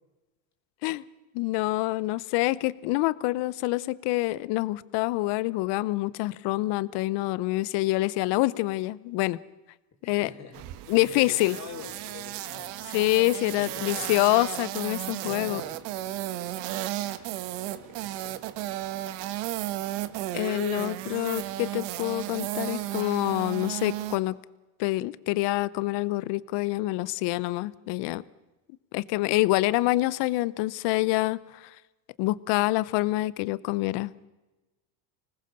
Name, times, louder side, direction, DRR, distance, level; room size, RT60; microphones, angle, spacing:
voice 1, 1.3-9.4 10.1-10.3 10.9-11.6 12.9-15.6 20.3-24.3 24.8-28.2 28.9-31.6 32.2-34.3, left 19 dB, 60° left, 19 dB, 1.0 m, -26 dB
voice 2, 10.0-12.8 13.6-14.1 15.1-15.8 16.6-17.4 17.7-18.6 20.4-21.1, left 6 dB, 35° left, 3 dB, 4.1 m, -47 dB
sound 1, 10.5-24.2, right 14 dB, 65° right, 1.4 m, -34 dB
25.5 x 19.5 x 6.7 m, 1.1 s
supercardioid pair, 110°, 46 cm